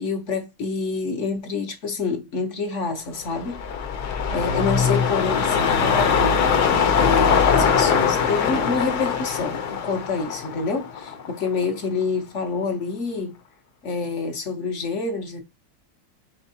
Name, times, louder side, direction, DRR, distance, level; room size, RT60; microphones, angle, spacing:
voice 1, 0.0-3.6 4.3-6.4 6.9-13.4 13.8-15.4, left 4 dB, 50° left, 0.9 m, -27 dB
sound 1, 3.2-11.6 12.0-12.1, left 6 dB, 65° left, 1.2 m, -22 dB
4.3 x 4.0 x 2.7 m
omnidirectional pair, 2.0 m